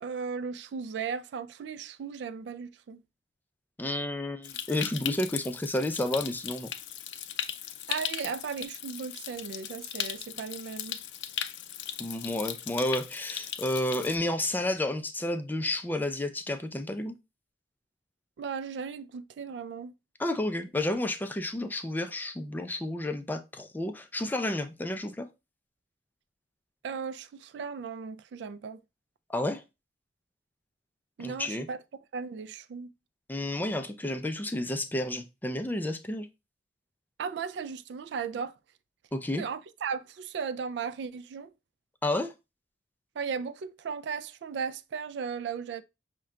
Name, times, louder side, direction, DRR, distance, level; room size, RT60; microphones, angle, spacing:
voice 1, 0.0-3.0 7.9-11.0 18.4-19.9 26.8-28.8 31.2-31.8 32.1-32.9 37.2-38.6 39.4-41.5 43.2-45.8, right 6 dB, 75° right, 0.3 m, -36 dB
voice 2, 3.8-6.7 12.0-17.1 20.2-25.3 29.3-29.6 31.2-31.7 33.3-36.3 39.1-39.4 42.0-42.3, left 1 dB, 10° left, 0.3 m, -31 dB
Stream, 4.4-14.2, left 10 dB, 85° left, 0.4 m, -38 dB
5.6 x 2.2 x 3.6 m
head